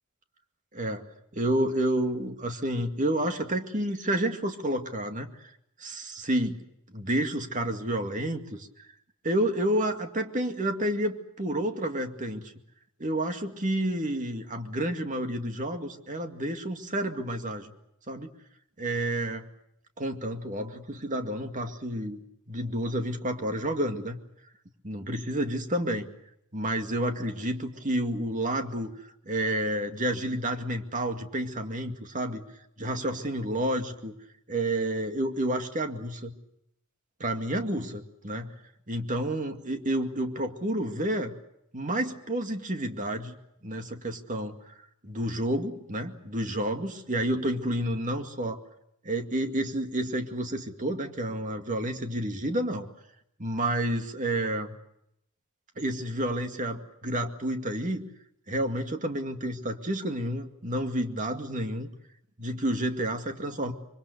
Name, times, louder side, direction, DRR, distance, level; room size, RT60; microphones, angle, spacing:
voice 1, 0.7-1.1 1.3-5.5 5.8-8.9 9.2-12.5 13.0-17.7 18.1-18.3 18.8-19.5 20.0-22.2 22.5-24.2 24.8-26.1 26.5-28.9 29.3-32.4 32.8-34.1 34.5-36.3 37.2-38.5 38.9-41.3 41.7-43.4 43.6-44.7 45.0-48.6 49.0-52.9 53.4-54.7 55.8-58.1 58.5-61.9 62.4-63.7, right 1 dB, 35° right, 6 dB, 2.2 m, -30 dB
25.0 x 24.5 x 6.7 m, 0.78 s
head